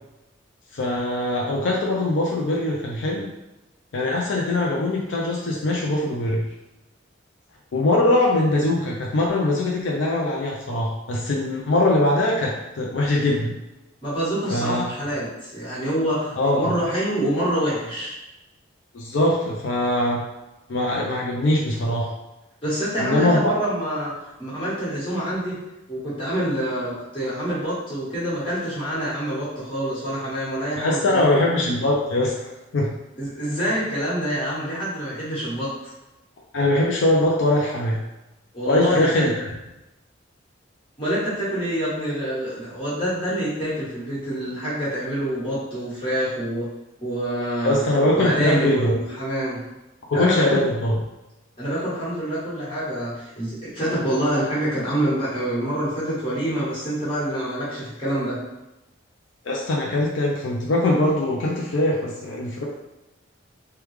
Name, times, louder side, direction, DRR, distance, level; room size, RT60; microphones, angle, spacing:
voice 1, 0.7-3.3 3.9-6.4 7.7-13.6 14.5-14.8 16.4-16.7 18.9-20.2 20.7-22.1 23.0-23.5 30.8-32.3 32.7-32.9 36.5-38.0 38.7-39.5 47.6-48.9 50.1-50.9 59.5-62.6, left 1 dB, 70° left, -2 dB, 0.4 m, -22 dB
voice 2, 14.0-18.1 22.6-24.1 24.4-25.6 25.9-31.4 33.2-35.9 38.5-39.3 41.0-46.7 47.0-47.8 48.1-49.6 50.1-50.6 51.6-58.4, right 1 dB, 25° left, -10 dB, 1.3 m, -26 dB
3.3 x 2.2 x 3.1 m, 0.98 s
head